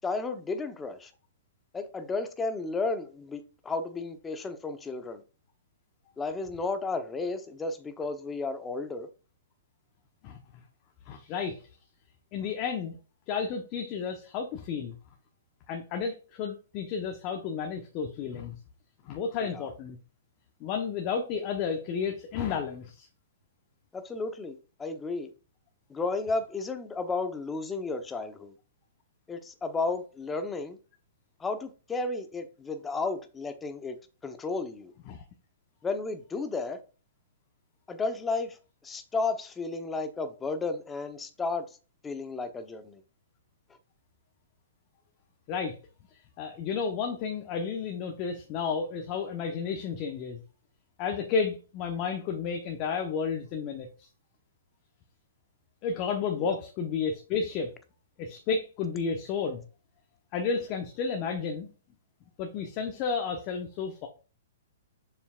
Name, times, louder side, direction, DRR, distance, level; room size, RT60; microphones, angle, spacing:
voice 1, 0.0-1.1 1.7-5.2 6.2-9.1 19.4-19.7 23.9-25.3 25.9-28.5 29.3-30.8 31.4-34.9 35.8-36.8 37.9-38.6 38.8-41.7 42.0-43.0 56.4-56.6, left 3 dB, 15° left, 0.9 m, -33 dB
voice 2, 11.1-11.6 12.3-13.0 13.3-14.9 15.7-18.6 19.0-20.0 20.6-23.1 35.1-35.2 45.5-45.8 46.4-50.4 51.0-54.1 55.8-57.7 58.2-59.6 60.3-61.7 62.4-64.1, left 5 dB, 35° left, 1.0 m, -32 dB
7.2 x 5.5 x 2.5 m
hypercardioid pair, 125°, 0 cm